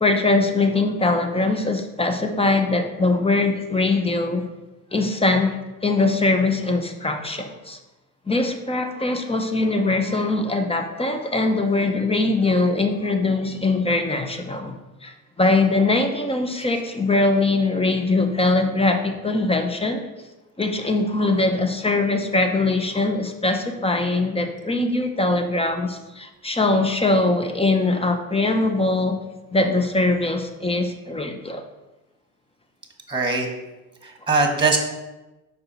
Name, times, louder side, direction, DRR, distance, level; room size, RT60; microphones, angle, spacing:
voice 1, 0.0-4.5 4.9-7.8 8.3-14.7 15.0-20.0 20.6-29.2 29.5-31.6, left 2 dB, 15° left, 6 dB, 0.9 m, -22 dB
voice 2, 33.1-33.5 34.0-34.8, right 3 dB, 10° right, 3 dB, 1.4 m, -21 dB
5.3 x 4.1 x 5.5 m, 1.1 s
supercardioid pair, 75°, 38 cm